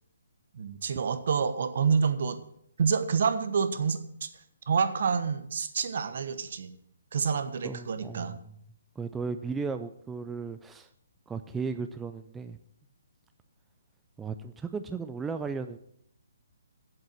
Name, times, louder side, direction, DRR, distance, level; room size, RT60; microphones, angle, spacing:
voice 1, 0.5-2.4 2.8-4.3 4.7-6.7 7.1-8.3, right 6 dB, 60° right, 11 dB, 1.1 m, -28 dB
voice 2, 7.6-8.5 9.0-10.9 11.3-12.6 14.2-15.8, right 5 dB, 10° right, 8 dB, 0.4 m, -35 dB
7.8 x 7.5 x 7.7 m, 0.72 s
hypercardioid pair, 145°, 0 cm